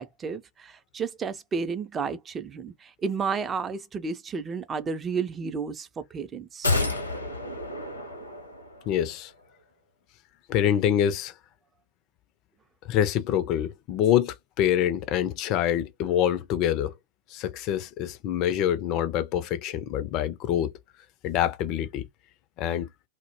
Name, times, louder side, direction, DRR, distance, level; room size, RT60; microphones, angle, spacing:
voice 1, 0.0-6.8, right 5 dB, 20° right, 0.4 m, -32 dB
sound 1, 6.6-9.0 9.3-9.4, left 2 dB, 80° left, 0.7 m, -30 dB
voice 2, 8.9-9.3 10.5-11.3 12.8-16.9 17.3-20.7 21.2-22.1 22.6-22.9, left 10 dB, 40° left, 0.4 m, -25 dB
2.1 x 2.1 x 2.9 m
figure-of-eight pair, 90°, 0 cm